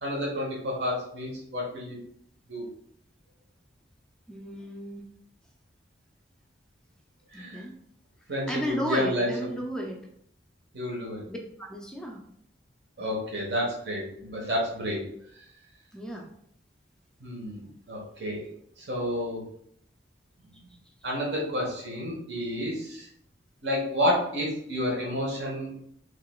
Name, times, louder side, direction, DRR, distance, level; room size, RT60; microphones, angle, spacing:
voice 1, 0.0-2.0 2.5-2.7 7.3-7.6 8.3-9.3 10.7-11.2 13.0-15.0 17.2-18.4 18.8-19.4 21.0-23.1 23.6-25.7, equal, 65° right, -3 dB, 1.2 m, -30 dB
voice 2, 4.3-5.0 7.3-7.7 8.5-10.0 11.3-12.2 15.9-16.3, equal, 5° left, 1 dB, 0.4 m, -34 dB
3.8 x 3.2 x 2.3 m, 0.69 s
head